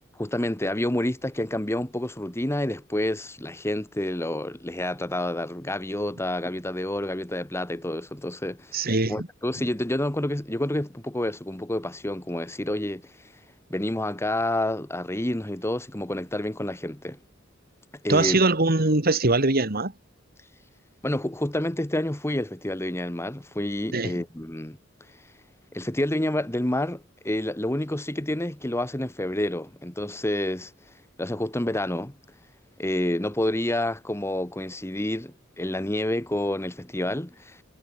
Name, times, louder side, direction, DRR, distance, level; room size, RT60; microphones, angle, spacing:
voice 1, 0.2-13.1 13.7-17.2 18.0-18.4 21.0-24.8 25.7-30.7 31.2-32.1 32.8-37.6, left 1 dB, 15° left, 1.4 m, -29 dB
voice 2, 8.7-9.3 18.1-19.9 23.9-24.2, right 2 dB, 50° right, 2.7 m, -22 dB
head